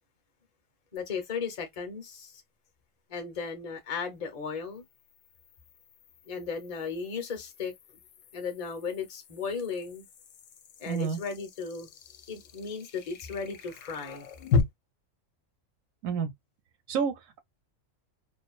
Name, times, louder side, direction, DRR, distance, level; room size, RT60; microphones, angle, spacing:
voice 1, 0.9-2.4 3.1-4.8 6.3-7.7 8.3-10.1 10.8-11.9 12.3-14.3, left 5 dB, 40° left, 0.6 m, -36 dB
feedback mod stereo ticks, 1.0-1.1 4.5-14.6, left 5 dB, 75° left, 0.9 m, -37 dB
voice 2, 10.9-11.2 16.0-16.3 16.9-17.4, right 6 dB, 80° right, 1.0 m, -29 dB
2.5 x 2.2 x 2.3 m
omnidirectional pair, 1.4 m